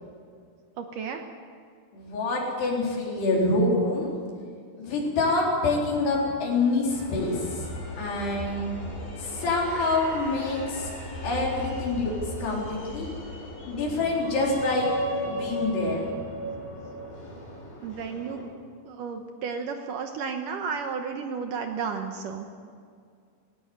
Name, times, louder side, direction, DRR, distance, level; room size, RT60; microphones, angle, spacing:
voice 1, 0.8-1.2 17.8-18.5 18.9-22.6, right 5 dB, 70° right, 5 dB, 2.3 m, -33 dB
voice 2, 1.9-4.1 4.7-7.5 7.9-8.7 9.2-10.9 11.2-13.1 13.7-14.9 15.2-16.1, left 2 dB, 85° left, -3 dB, 6.2 m, -26 dB
sound 1, 6.9-18.4, equal, 65° left, 7.6 m, -36 dB
19.0 x 18.0 x 7.9 m, 2.2 s
omnidirectional pair, 4.6 m